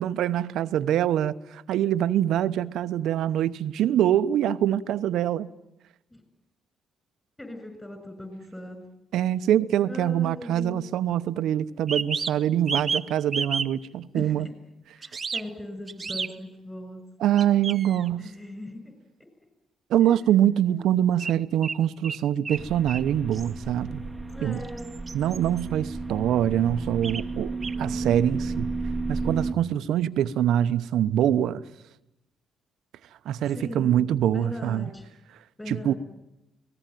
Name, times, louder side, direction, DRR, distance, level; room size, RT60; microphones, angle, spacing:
voice 1, 0.0-5.5 9.1-14.5 17.2-18.3 19.9-24.0 24.4-24.6 25.1-28.7 29.1-31.6 33.2-34.9 35.7-35.9, right 11 dB, 80° right, 0.9 m, -24 dB
voice 2, 7.4-8.8 9.8-10.8 14.1-14.5 14.9-17.0 18.2-18.8 20.0-20.1 20.6-20.8 24.3-24.9 27.3-28.1 33.5-34.0 34.3-35.0 35.6-36.0, left 1 dB, 10° left, 6.4 m, -39 dB
sound 1, 9.6-9.7 11.8-13.1 13.3-13.7 15.0-15.4 15.9-16.3 17.4-18.1 21.2-21.3 21.6-22.6 22.9-23.0 23.3-23.5 24.5-25.6 27.0-27.3 27.6-27.8, right 5 dB, 35° right, 1.0 m, -31 dB
sound 2, 22.6-29.5, right 3 dB, 10° right, 1.3 m, -33 dB
25.0 x 19.0 x 9.2 m
cardioid pair, 90°, 0 cm